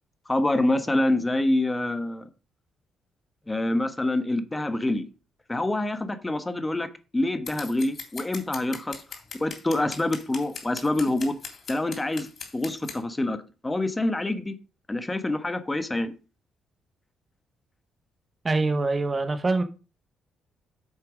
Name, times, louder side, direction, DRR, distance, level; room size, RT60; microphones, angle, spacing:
voice 1, 0.3-2.3 3.5-5.1 5.5-9.0 9.4-11.3 11.7-12.3 12.5-13.4 13.6-14.5 14.9-16.1, left 1 dB, 15° left, 1.1 m, -26 dB
Scissors, 7.5-13.0, left 5 dB, 45° left, 3.1 m, -39 dB
voice 2, 18.4-19.6, right 3 dB, 30° right, 1.0 m, -24 dB
8.3 x 6.7 x 5.0 m
cardioid pair, 100°, 0 cm